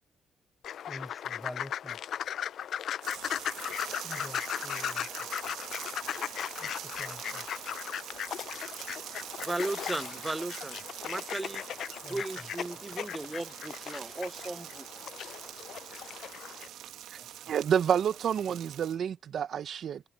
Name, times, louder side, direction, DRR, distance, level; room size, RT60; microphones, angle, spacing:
sound 1, 0.6-16.7, left 9 dB, 65° left, 0.4 m, -37 dB
voice 1, 0.9-2.0 4.0-5.5 6.6-7.5 12.0-12.5 17.2-17.4, left 1 dB, 10° left, 6.1 m, -47 dB
sound 2, 3.0-19.0, right 12 dB, 85° right, 1.8 m, -44 dB
voice 2, 9.4-11.7 12.1-14.9, right 2 dB, 15° right, 0.4 m, -36 dB
voice 3, 17.5-20.0, right 8 dB, 65° right, 0.9 m, -29 dB
cardioid pair, 90°, 0 cm